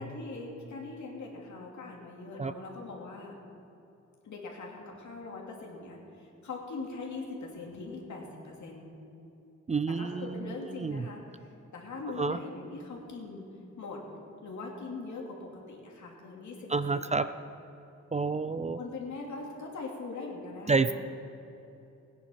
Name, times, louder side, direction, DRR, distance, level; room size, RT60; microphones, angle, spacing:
voice 1, 0.0-3.3 4.2-8.9 10.0-13.4 13.8-14.0 14.4-17.3 18.8-21.0, left 3 dB, 75° left, -1 dB, 2.7 m, -41 dB
voice 2, 9.7-11.1 12.2-12.4 16.7-17.3 18.1-18.8 20.7-21.0, right 4 dB, 25° right, 12 dB, 0.4 m, -29 dB
17.5 x 9.8 x 5.8 m, 2.9 s
cardioid pair, 90°, 29 cm